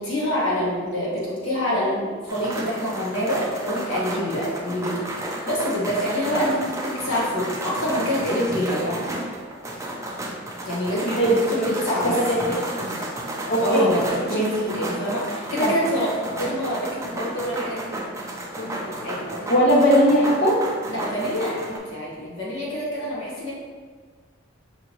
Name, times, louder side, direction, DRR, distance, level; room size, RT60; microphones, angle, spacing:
voice 1, 0.0-9.0 10.6-12.2 13.6-18.0 18.6-19.5 20.9-23.5, equal, 85° left, -6 dB, 1.3 m, -26 dB
sound 1, 2.3-21.8, right 1 dB, 15° right, 0.4 m, -32 dB
voice 2, 11.1-11.7 12.0-12.6 13.4-13.9 14.3-14.4 19.5-20.6, equal, 55° left, -6 dB, 0.9 m, -19 dB
5.7 x 2.5 x 2.9 m, 1.5 s
head